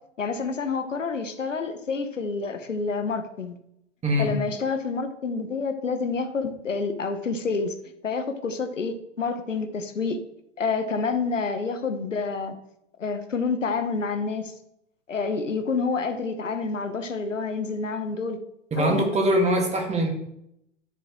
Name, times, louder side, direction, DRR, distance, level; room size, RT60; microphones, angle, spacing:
voice 1, 0.2-3.6 4.2-7.8 8.0-10.2 10.6-12.5 13.0-14.5 15.1-18.4 18.8-19.0, left 4 dB, 85° left, 8 dB, 1.0 m, -28 dB
voice 2, 18.7-20.1, equal, 15° right, 2 dB, 2.0 m, -22 dB
10.5 x 6.9 x 3.1 m, 0.78 s
figure-of-eight pair, 100°, 37 cm